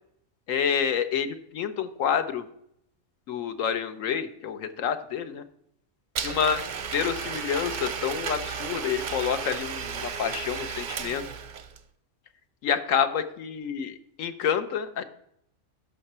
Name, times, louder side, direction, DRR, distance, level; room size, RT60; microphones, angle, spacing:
voice 1, 0.5-2.5 3.3-5.4 6.2-6.6 6.9-11.2 12.6-15.0, left 8 dB, 85° left, 10 dB, 1.2 m, -28 dB
Domestic sounds home sounds, 6.2-11.8, right 6 dB, 50° right, 0.6 m, -34 dB
12.5 x 5.6 x 4.2 m, 0.74 s
omnidirectional pair, 1.3 m